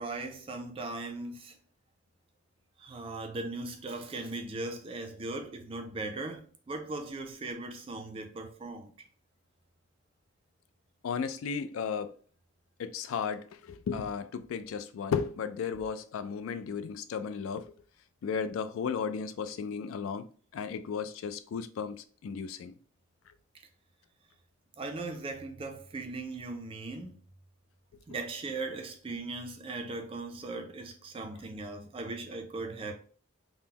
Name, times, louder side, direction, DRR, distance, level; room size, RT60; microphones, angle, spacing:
voice 1, 0.0-1.6 2.8-8.9 24.8-27.2 28.1-32.9, right 2 dB, 25° right, 0.3 m, -38 dB
voice 2, 11.0-12.2 12.8-17.7 18.2-22.7, left 6 dB, 85° left, 0.3 m, -34 dB
3.7 x 2.0 x 2.8 m
head